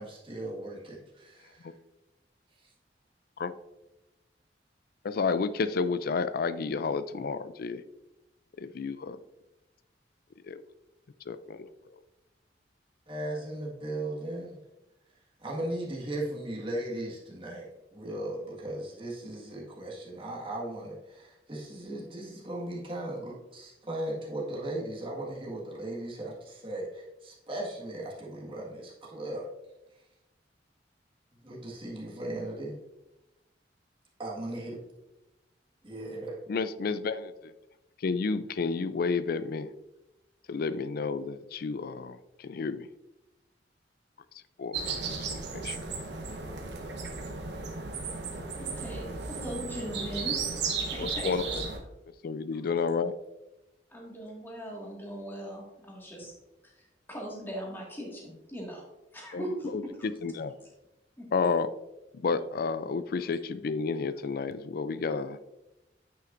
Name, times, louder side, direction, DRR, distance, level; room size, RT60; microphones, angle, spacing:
voice 1, 0.0-1.7 2.6-2.7 13.1-14.6 15.4-29.5 31.4-32.8 34.2-34.8 35.8-36.4, right 1 dB, 30° right, -4 dB, 1.7 m, -37 dB
voice 2, 5.0-7.8 8.6-9.2 10.4-10.6 11.3-11.7 36.5-37.5 38.0-39.7 40.5-42.9 44.6-44.8 45.3-45.8 51.0-51.6 52.2-53.2 59.3-59.4 59.7-60.5 61.3-61.7 62.1-65.4, left 4 dB, 55° left, 14 dB, 0.4 m, -31 dB
sound 1, 44.7-51.8, right 4 dB, 70° right, 1.0 m, -35 dB
voice 3, 48.6-50.4 50.9-51.7 52.5-52.6 53.9-56.3 56.6-58.8 59.1-60.1 61.2-61.3, right 1 dB, 10° left, -3 dB, 1.9 m, -39 dB
9.2 x 5.7 x 2.5 m, 0.96 s
head